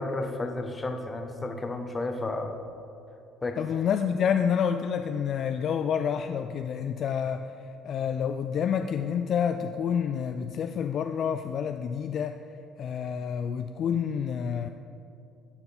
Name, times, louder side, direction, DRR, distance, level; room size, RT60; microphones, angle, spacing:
voice 1, 0.0-2.6 3.4-3.6, left 2 dB, 25° left, 5 dB, 1.0 m, -32 dB
voice 2, 3.6-12.4 12.8-14.7, left 7 dB, 50° left, 7 dB, 0.3 m, -28 dB
11.5 x 6.7 x 4.1 m, 2.6 s
figure-of-eight pair, 55°, 0 cm